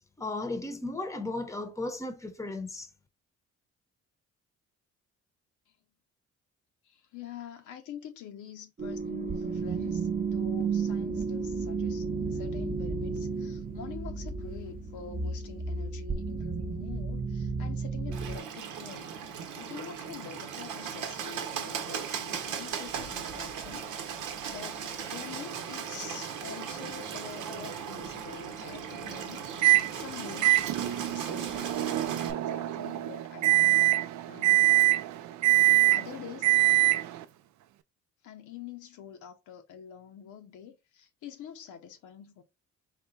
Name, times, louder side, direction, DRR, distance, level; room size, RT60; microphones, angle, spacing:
voice 1, 0.2-2.9, left 2 dB, 10° left, 0.8 m, -35 dB
voice 2, 6.8-19.1 19.5-23.9 24.5-29.4 29.9-33.8 34.3-34.8 35.9-36.6 38.2-42.4, left 8 dB, 80° left, 0.8 m, -46 dB
sound 1, 8.8-18.4, right 4 dB, 30° right, 0.7 m, -32 dB
Bird, 18.1-32.3, right 7 dB, 85° right, 0.9 m, -37 dB
Microwave oven, 29.6-29.9 30.4-37.2, right 18 dB, 70° right, 0.4 m, -24 dB
4.1 x 2.2 x 4.0 m
cardioid pair, 90°, 30 cm